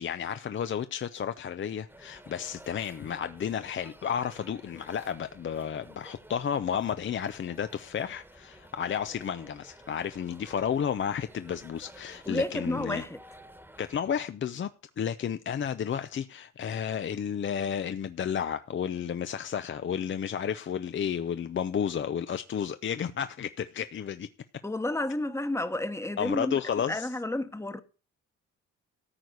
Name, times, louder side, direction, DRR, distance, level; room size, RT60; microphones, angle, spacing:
voice 1, 0.0-13.0 13.8-14.7 15.0-24.3 26.2-27.1, left 8 dB, 40° left, 0.7 m, -32 dB
sound 1, 1.9-14.0, right 1 dB, 5° right, 1.4 m, -53 dB
voice 2, 12.3-13.2 24.6-26.5 26.9-27.8, left 1 dB, 10° left, 1.1 m, -31 dB
14.0 x 4.6 x 8.0 m
cardioid pair, 90°, 30 cm